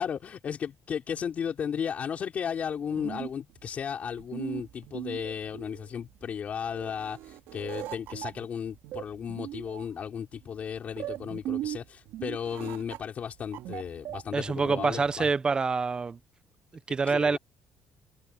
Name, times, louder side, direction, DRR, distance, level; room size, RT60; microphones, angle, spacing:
voice 1, 0.0-15.3 17.1-17.4, left 7 dB, 40° left, 3.8 m, -35 dB
sound 1, 2.7-15.2, right 13 dB, 80° right, 2.4 m, -40 dB
voice 2, 14.3-16.2 16.9-17.4, right 4 dB, 20° right, 0.6 m, -26 dB
cardioid pair, 155°, 4 cm